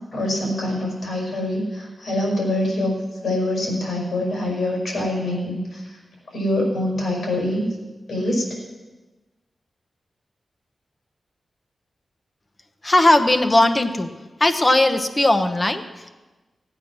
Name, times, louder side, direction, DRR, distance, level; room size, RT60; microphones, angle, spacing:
voice 1, 0.1-3.0 3.2-6.0 6.3-7.6 8.1-8.5, left 1 dB, 85° left, -1 dB, 5.3 m, -24 dB
voice 2, 12.8-14.1 14.4-15.8, left 1 dB, 20° left, 8 dB, 0.9 m, -17 dB
16.5 x 8.9 x 6.2 m, 1.2 s
wide cardioid pair, 135°, 0 cm